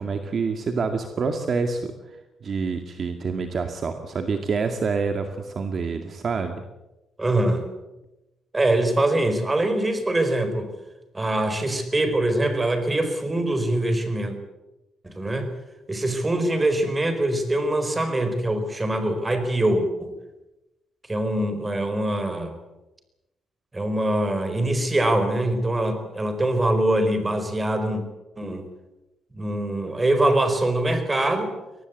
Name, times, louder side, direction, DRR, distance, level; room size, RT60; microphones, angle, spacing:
voice 1, 0.0-1.9 2.4-6.6, right 4 dB, 45° right, 6 dB, 2.1 m, -27 dB
voice 2, 7.2-7.7 8.5-10.7 11.1-14.3 15.0-15.5 15.9-20.1 21.1-22.5 23.7-28.0 28.4-28.6 29.3-31.5, right 1 dB, 20° right, 9 dB, 4.7 m, -23 dB
23.5 x 19.0 x 8.4 m, 0.99 s
cardioid pair, 105°, 0 cm